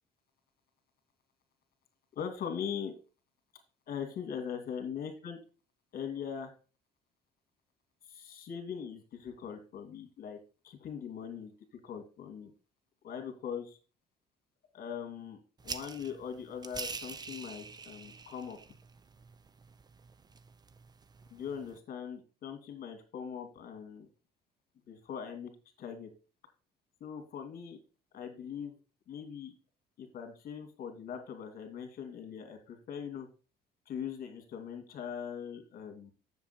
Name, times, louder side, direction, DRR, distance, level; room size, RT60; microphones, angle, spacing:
voice 1, 2.2-3.0 3.9-5.4 5.9-6.5 8.0-10.4 10.6-11.5 11.8-12.5 13.0-13.8 14.7-18.6 21.3-24.1 24.9-25.5 25.8-26.1 27.0-27.8 28.1-28.8 29.1-29.5 30.0-33.3 33.9-36.1, left 7 dB, 60° left, 7 dB, 2.4 m, -41 dB
sound 1, 15.6-21.8, right 4 dB, 25° right, 0.7 m, -46 dB
7.3 x 7.2 x 4.3 m, 0.34 s
cardioid pair, 110°, 17 cm